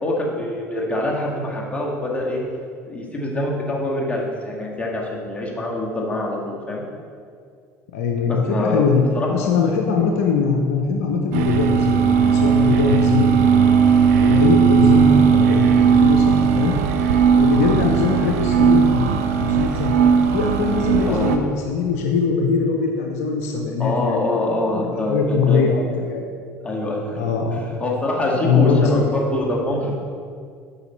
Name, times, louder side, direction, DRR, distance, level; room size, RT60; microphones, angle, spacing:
voice 1, 0.0-2.4 2.9-6.8 8.3-8.8 9.1-9.3 21.1-21.3 23.8-25.7 26.6-30.0, left 1 dB, 15° left, -3 dB, 1.9 m, -25 dB
voice 2, 7.9-9.0 9.3-13.5 13.8-16.7 17.3-20.0 20.3-26.2 27.2-27.6 28.3-29.1, left 5 dB, 70° left, 2 dB, 0.7 m, -21 dB
sound 1, 11.3-21.4, right 7 dB, 70° right, 0.6 m, -17 dB
8.0 x 5.6 x 4.2 m, 2.2 s
figure-of-eight pair, 65°, 8 cm